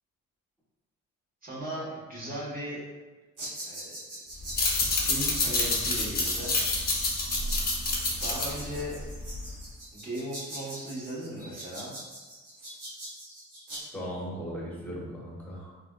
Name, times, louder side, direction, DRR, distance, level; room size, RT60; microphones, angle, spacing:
voice 1, 1.4-2.8 3.6-3.9 5.0-6.5 8.2-8.9 9.9-11.9, equal, 30° right, -7 dB, 1.1 m, -37 dB
sound 1, 3.4-13.8, right 1 dB, 85° right, 1.4 m, -42 dB
sound 2, 4.4-9.6, left 2 dB, 30° left, 0.7 m, -28 dB
voice 2, 13.9-15.7, equal, 5° left, -5 dB, 1.0 m, -37 dB
3.4 x 2.5 x 2.2 m, 1.3 s
cardioid pair, 90°, 30 cm